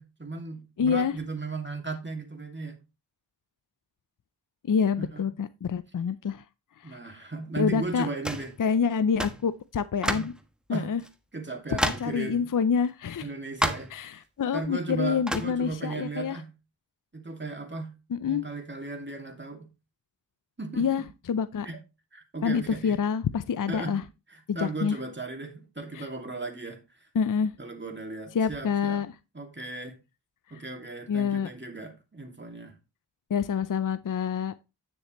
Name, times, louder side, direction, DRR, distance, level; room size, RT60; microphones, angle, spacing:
voice 1, 0.0-2.8 5.0-5.2 6.8-8.5 10.1-10.3 10.7-10.9 11.3-12.5 13.2-13.9 14.5-16.5 17.1-17.9 18.2-19.7 20.6-21.0 21.6-21.8 22.1-23.0 23.7-26.8 27.6-29.0 29.3-29.9 30.5-32.7, right 3 dB, 25° right, 2.4 m, -36 dB
voice 2, 0.8-1.1 4.6-6.4 6.8-7.1 7.6-8.1 8.6-10.3 10.7-11.0 11.7-13.3 13.9-16.4 18.1-18.4 20.8-21.7 22.4-24.0 24.5-25.0 25.9-26.1 27.1-27.5 28.3-29.1 30.5-30.6 31.1-31.5 33.3-34.5, left 6 dB, 50° left, 0.6 m, -27 dB
sound 1, 8.3-8.5 9.2-9.4 10.0-10.4 11.0-11.1 11.8-12.2 13.6-14.0 15.3-15.6, equal, ahead, 1.2 m, -29 dB
10.0 x 6.6 x 3.0 m
cardioid pair, 45°, 43 cm